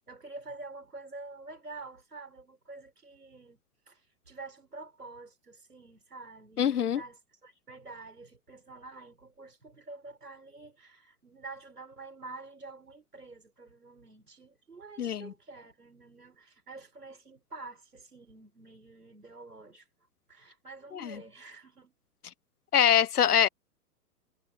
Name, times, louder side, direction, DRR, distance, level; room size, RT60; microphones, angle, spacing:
voice 1, 0.1-3.6 3.9-19.9 20.3-21.9, right 3 dB, 85° right, 5.4 m, -48 dB
voice 2, 6.6-7.0 15.0-15.3 20.9-21.2 22.7-23.5, left 9 dB, 80° left, 0.7 m, -24 dB
figure-of-eight pair, 105°, 45 cm